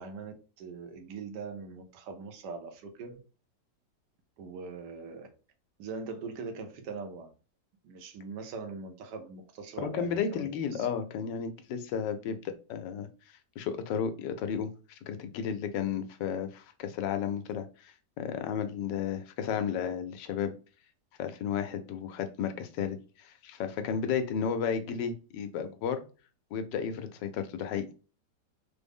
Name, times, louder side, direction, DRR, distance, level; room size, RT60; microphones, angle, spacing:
voice 1, 0.0-3.2 4.4-5.3 5.8-7.3 7.8-10.9, right 4 dB, 75° right, 1.3 m, -41 dB
voice 2, 9.8-13.1 13.6-20.5 21.2-26.0 26.5-27.9, left 7 dB, 85° left, 1.2 m, -33 dB
3.7 x 2.0 x 3.5 m
omnidirectional pair, 1.9 m